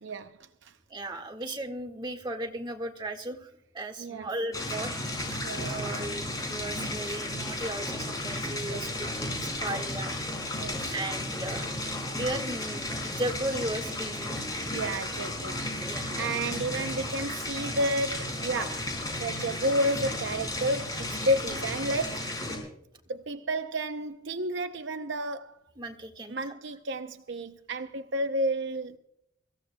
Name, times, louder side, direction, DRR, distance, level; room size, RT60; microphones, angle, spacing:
voice 1, 0.0-0.8 4.0-4.3 4.7-4.8 5.3-6.0 7.1-7.2 8.7-8.9 10.5-11.0 14.6-15.6 16.2-22.5 23.1-25.6 26.3-29.0, right 1 dB, 60° right, 0.6 m, -31 dB
voice 2, 0.9-5.0 5.6-10.1 10.5-11.7 12.2-14.4 15.9-16.2 25.8-26.5, right 1 dB, 20° right, 1.7 m, -36 dB
sound 1, 4.5-22.6, left 1 dB, 20° left, 4.8 m, -34 dB
25.0 x 15.5 x 2.2 m
head